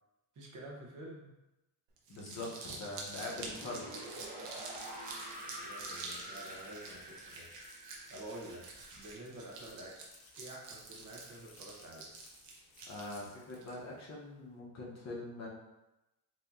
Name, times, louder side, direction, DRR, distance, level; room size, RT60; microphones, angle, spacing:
voice 1, 0.3-1.3 5.6-7.5 8.1-8.7 8.9-12.1, right 1 dB, 45° right, -2 dB, 1.0 m, -49 dB
Crumpling crinkling, 2.0-13.7, right 3 dB, 80° right, 1.0 m, -48 dB
voice 2, 2.1-4.1 12.9-15.5, left 2 dB, 40° left, -4 dB, 1.1 m, -43 dB
sound 1, 3.1-10.0, right 1 dB, 20° right, 0.7 m, -48 dB
sound 2, 4.6-14.1, left 4 dB, 60° left, 0.9 m, -62 dB
4.6 x 2.9 x 2.7 m, 0.97 s
cardioid pair, 120°, 42 cm